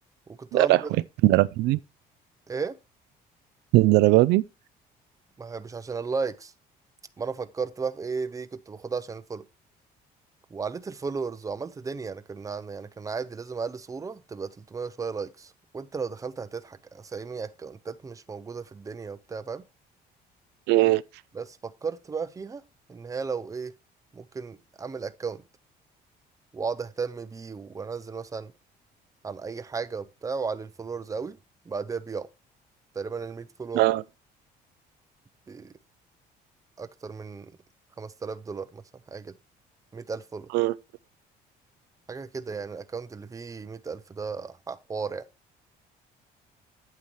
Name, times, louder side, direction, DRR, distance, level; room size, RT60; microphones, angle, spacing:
voice 1, 0.3-0.9 2.5-2.8 5.4-6.5 7.2-9.4 10.5-19.6 21.3-22.6 22.9-23.7 24.1-25.4 26.5-28.5 29.2-31.4 31.7-32.3 32.9-33.8 35.5-35.7 36.8-37.5 38.0-38.8 39.1-39.4 39.9-40.5 42.1-45.2, right 5 dB, 20° right, 0.6 m, -34 dB
voice 2, 1.2-1.8 3.7-4.4 20.7-21.0 33.7-34.0 40.5-40.7, right 18 dB, 85° right, 0.4 m, -19 dB
8.9 x 8.6 x 3.1 m
cardioid pair, 110°, 17 cm